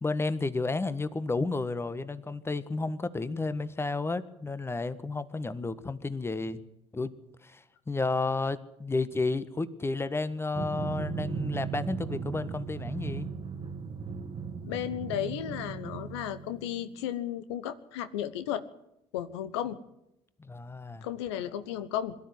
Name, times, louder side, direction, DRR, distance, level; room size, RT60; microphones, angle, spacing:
voice 1, 0.0-6.6 6.9-7.1 7.4-13.3 20.4-21.1, left 3 dB, 15° left, 14 dB, 1.5 m, -32 dB
Drum, 10.5-17.0, right 6 dB, 35° right, 1.7 m, -37 dB
voice 2, 14.6-18.6 19.1-19.8 21.0-22.1, left 10 dB, 75° left, 12 dB, 1.2 m, -34 dB
22.5 x 12.5 x 9.7 m, 0.82 s
hypercardioid pair, 60°, 14 cm